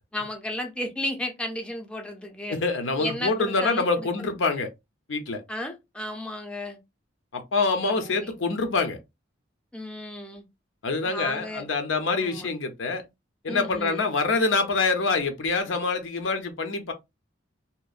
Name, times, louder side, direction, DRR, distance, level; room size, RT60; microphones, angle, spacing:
voice 1, 0.1-2.6 3.0-4.1 5.5-6.8 7.8-8.3 9.7-10.5 11.0-11.7 12.2-12.5 13.5-14.1, left 1 dB, 5° left, 0.5 m, -33 dB
voice 2, 2.5-4.7 5.1-5.4 7.3-9.0 10.8-13.0 13.4-16.9, left 3 dB, 90° left, 0.7 m, -25 dB
2.8 x 2.1 x 2.4 m
head